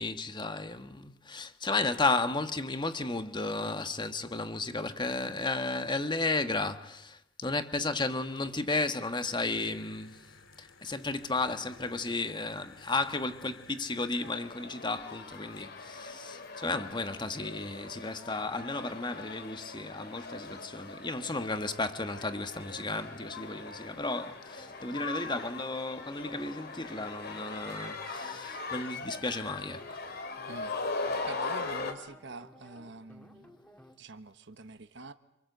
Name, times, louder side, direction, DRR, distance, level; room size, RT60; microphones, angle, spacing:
voice 1, 0.0-10.3 10.6-30.0, left 3 dB, 20° left, 1.4 m, -33 dB
sound 1, 9.2-14.3, left 4 dB, 80° left, 2.5 m, -55 dB
sound 2, 14.2-31.9, left 3 dB, 50° left, 2.9 m, -40 dB
sound 3, 22.9-34.0, left 1 dB, 5° left, 2.4 m, -56 dB
voice 2, 31.3-33.6 34.0-35.1, right 3 dB, 60° right, 1.3 m, -46 dB
27.5 x 27.0 x 8.0 m
head